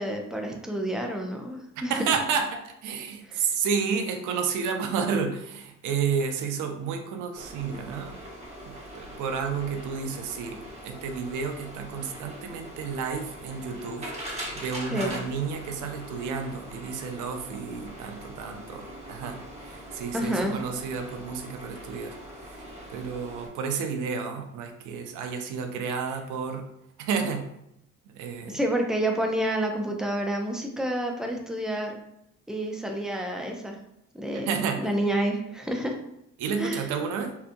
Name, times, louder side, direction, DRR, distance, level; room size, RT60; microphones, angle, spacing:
voice 1, 0.0-1.9 3.3-3.4 14.9-15.1 20.1-20.6 28.5-31.9 32.5-33.8 34.1-34.5 34.8-35.9 36.6-36.9, right 1 dB, ahead, 2 dB, 0.4 m, -29 dB
voice 2, 1.8-8.1 8.6-22.2 22.4-22.6 22.9-26.7 27.0-27.5 28.1-28.6 34.3-34.9 36.4-37.4, right 6 dB, 85° right, 5 dB, 0.5 m, -31 dB
sound 1, 7.3-23.5, equal, 20° right, 1.0 m, -42 dB
2.8 x 2.2 x 2.5 m, 0.79 s
cardioid pair, 90°, 30 cm